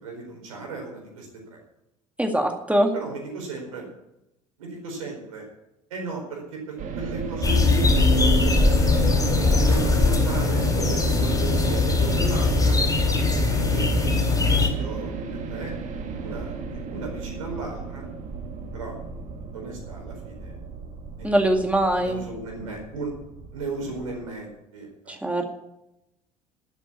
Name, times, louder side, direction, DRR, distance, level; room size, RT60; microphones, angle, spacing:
voice 1, 0.0-1.6 2.9-3.9 4.6-5.4 5.9-8.8 9.4-12.8 13.3-15.1 15.5-15.7 16.2-18.1 18.7-19.0 19.5-20.5 21.2-21.3 22.0-23.1 23.5-25.1, right 3 dB, 75° right, 1 dB, 4.5 m, -35 dB
voice 2, 2.2-2.9 21.2-22.2 25.2-25.4, right 1 dB, 5° right, 4 dB, 2.1 m, -22 dB
sound 1, 6.8-24.3, right 5 dB, 45° right, 2.0 m, -34 dB
sound 2, 7.4-14.7, left 3 dB, 20° left, 4.1 m, -21 dB
12.5 x 8.3 x 8.5 m, 0.87 s
figure-of-eight pair, 60°, 18 cm